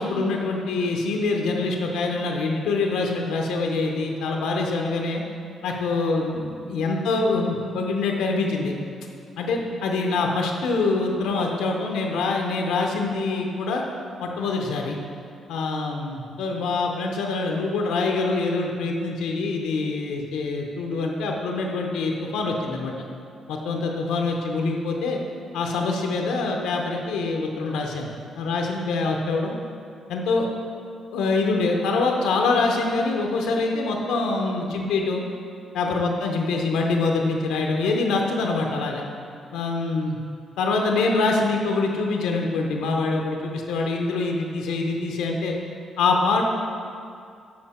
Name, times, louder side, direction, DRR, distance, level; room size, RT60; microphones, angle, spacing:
voice 1, 0.0-5.2 5.6-8.7 9.4-13.8 14.2-15.0 15.5-22.9 23.5-25.2 25.5-28.1 28.4-29.5 30.1-30.5 31.1-35.2 35.7-39.0 39.5-40.2 40.6-45.5 46.0-46.4, left 3 dB, 90° left, 1 dB, 0.7 m, -25 dB
7.7 x 4.5 x 4.2 m, 2.3 s
cardioid pair, 90°, 0 cm